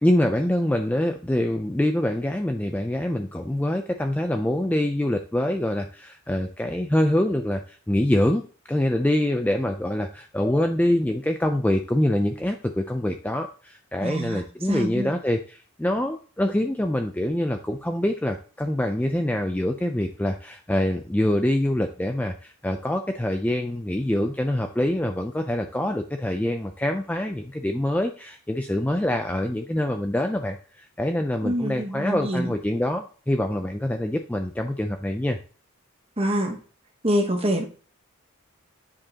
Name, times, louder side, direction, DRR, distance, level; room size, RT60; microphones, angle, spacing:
voice 1, 0.0-35.4, left 1 dB, 5° left, 5 dB, 0.4 m, -25 dB
voice 2, 14.0-15.1 31.4-32.5 36.2-36.6 37.0-37.6, equal, 25° right, 3 dB, 1.1 m, -26 dB
9.7 x 5.0 x 2.9 m, 0.39 s
head